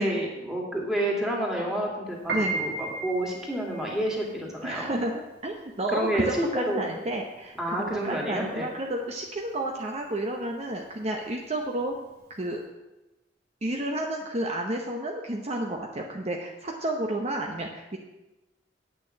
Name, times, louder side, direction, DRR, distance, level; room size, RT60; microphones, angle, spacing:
voice 1, 0.0-4.9 5.9-6.9 7.6-8.7, right 1 dB, 5° right, -2 dB, 2.5 m, -29 dB
Piano, 2.1-12.5, right 3 dB, 65° right, 1.7 m, -37 dB
voice 2, 4.6-5.1 5.4-12.0 12.3-12.6 13.6-18.0, right 1 dB, 35° right, 1 dB, 0.9 m, -31 dB
8.7 x 6.8 x 7.8 m, 1.0 s
head